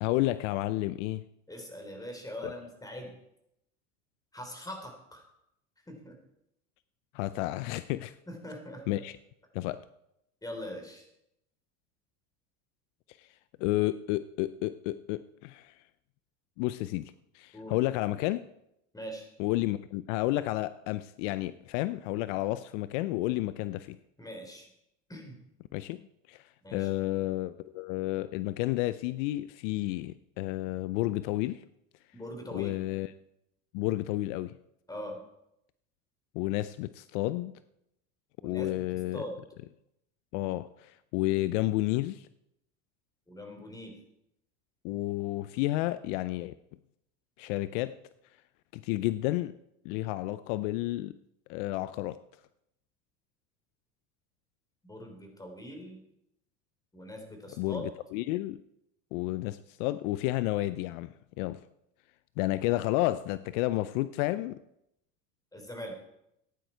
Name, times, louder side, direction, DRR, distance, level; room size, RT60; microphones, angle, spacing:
voice 1, 0.0-1.2 2.4-2.5 7.1-8.1 8.9-9.2 9.5-9.8 13.2-13.3 13.6-15.7 16.6-18.4 19.4-24.0 25.7-26.0 26.3-26.4 26.7-31.6 32.5-33.1 33.7-34.6 36.3-37.5 38.4-39.2 40.3-42.3 44.8-46.5 47.4-47.9 48.7-49.5 49.8-51.2 51.5-52.2 57.6-57.8 58.1-58.6 59.1-61.1 61.4-61.6 62.4-64.6, left 17 dB, 70° left, 15 dB, 0.6 m, -31 dB
voice 2, 1.5-3.1 4.3-5.2 5.9-6.2 8.3-9.0 10.4-11.0 17.5-17.8 18.9-19.3 24.2-24.7 25.1-25.4 26.6-26.9 32.1-32.7 34.9-35.2 38.4-38.7 39.1-39.4 43.3-43.9 54.8-56.0 56.9-57.8 65.5-65.9, equal, 10° left, 3 dB, 4.0 m, -42 dB
15.0 x 10.5 x 4.6 m, 0.81 s
supercardioid pair, 95°, 38 cm